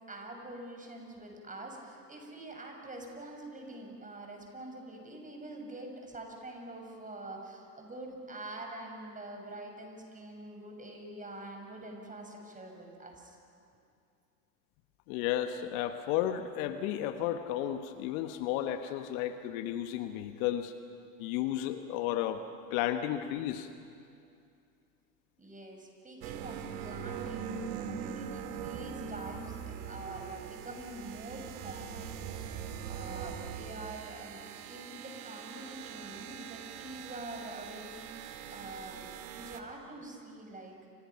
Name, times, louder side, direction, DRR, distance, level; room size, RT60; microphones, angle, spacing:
voice 1, 0.1-13.4 25.4-40.8, right 2 dB, 15° right, 2 dB, 6.2 m, -45 dB
voice 2, 15.1-20.7 21.2-22.4 22.7-23.7, left 11 dB, 55° left, 8 dB, 1.4 m, -33 dB
sound 1, 26.2-39.6, right 8 dB, 60° right, 2.0 m, -42 dB
30.0 x 26.0 x 5.8 m, 2.5 s
hypercardioid pair, 85°, 48 cm